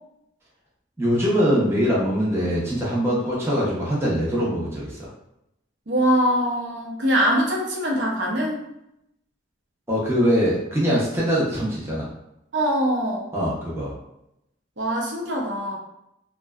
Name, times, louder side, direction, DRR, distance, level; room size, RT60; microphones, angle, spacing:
voice 1, 1.0-5.1 9.9-12.1 13.3-13.9, equal, 15° right, -6 dB, 0.6 m, -22 dB
voice 2, 5.9-8.6 12.5-13.3 14.8-15.8, equal, 60° right, -2 dB, 0.6 m, -23 dB
2.6 x 2.1 x 2.3 m, 0.84 s
head